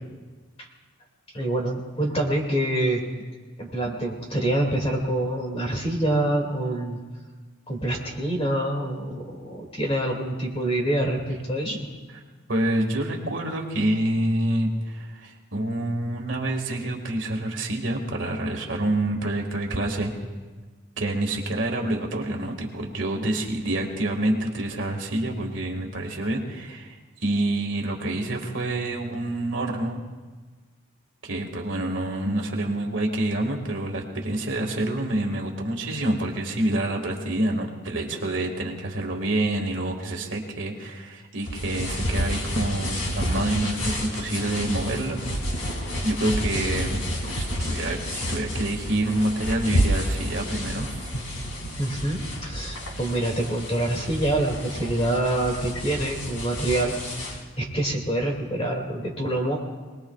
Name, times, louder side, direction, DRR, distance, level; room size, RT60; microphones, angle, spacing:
voice 1, 1.3-3.0 3.6-7.0 7.7-11.9 51.8-56.9 57.6-59.6, right 1 dB, 25° left, 0 dB, 2.4 m, -26 dB
voice 2, 12.5-20.1 21.0-30.0 31.2-45.2 46.0-51.1, right 1 dB, 60° right, 1 dB, 2.0 m, -27 dB
sound 1, 41.4-57.4, equal, 80° left, 2.6 m, -30 dB
26.5 x 19.5 x 2.4 m, 1.4 s
head